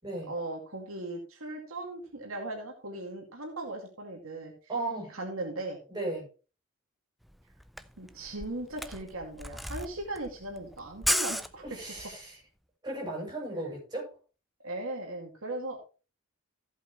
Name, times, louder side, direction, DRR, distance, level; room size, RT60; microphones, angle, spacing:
voice 1, 0.3-4.5 5.1-5.8 8.0-11.6 14.6-15.8, right 2 dB, 80° right, 0 dB, 2.4 m, -38 dB
voice 2, 4.7-5.2 5.9-6.3 11.6-12.4 12.8-14.1, right 2 dB, 20° right, -2 dB, 7.1 m, -35 dB
Camera, 7.3-7.4 7.6-12.1, equal, ahead, 0.4 m, -34 dB
14.5 x 8.1 x 3.2 m, 0.34 s
head